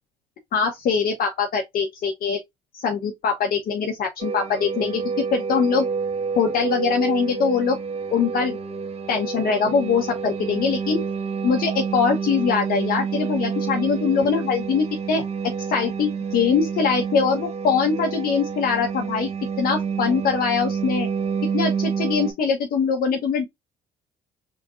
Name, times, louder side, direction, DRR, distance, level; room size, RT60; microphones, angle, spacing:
voice 1, 0.5-2.4 2.7-5.0 5.3-5.8 6.4-7.8 8.1-8.6 9.1-11.0 11.4-15.2 15.7-19.3 19.6-21.1 21.5-23.4, left 6 dB, 60° left, 1.2 m, -22 dB
sound 1, 4.2-22.3, right 6 dB, 40° right, 1.5 m, -28 dB
4.3 x 3.8 x 2.6 m
cardioid pair, 110°, 17 cm